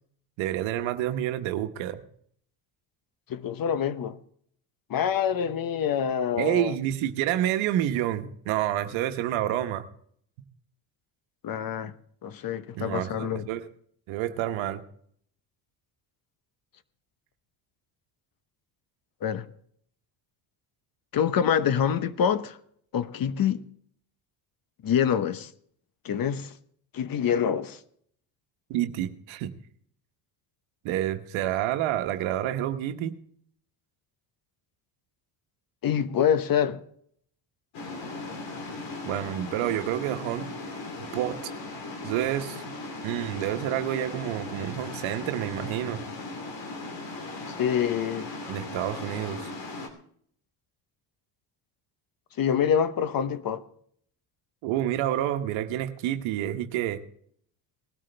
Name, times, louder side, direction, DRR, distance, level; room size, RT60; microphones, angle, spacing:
voice 1, 0.4-2.0 6.4-9.8 12.7-13.7 14.1-14.8 28.7-29.5 30.8-33.2 39.0-40.5 41.1-41.5 42.0-42.6 43.0-46.0 48.5-49.5 54.6-57.0, right 12 dB, 80° right, 1.2 m, -28 dB
voice 2, 3.3-4.2 4.9-6.7 11.4-11.9 12.2-13.5 19.2-19.5 21.1-22.6 22.9-23.6 24.8-25.5 26.0-26.5 26.9-27.8 35.8-36.8 47.6-48.3 52.4-53.6, left 8 dB, 45° left, 1.1 m, -26 dB
sound 1, 37.7-49.9, left 2 dB, 65° left, 3.0 m, -38 dB
19.5 x 12.5 x 3.3 m
supercardioid pair, 90°, 46 cm